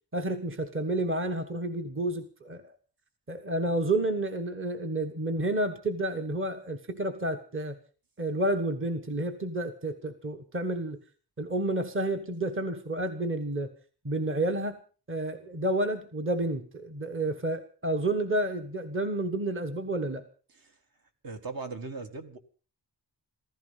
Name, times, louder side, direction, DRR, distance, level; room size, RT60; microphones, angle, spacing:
voice 1, 0.1-2.7 3.3-7.8 8.2-11.0 11.4-13.7 14.0-14.8 15.1-20.2, right 1 dB, 30° right, 6 dB, 1.4 m, -30 dB
voice 2, 21.2-22.4, right 4 dB, 60° right, 6 dB, 2.1 m, -39 dB
15.5 x 15.0 x 5.7 m, 0.39 s
wide cardioid pair, 160°, 40 cm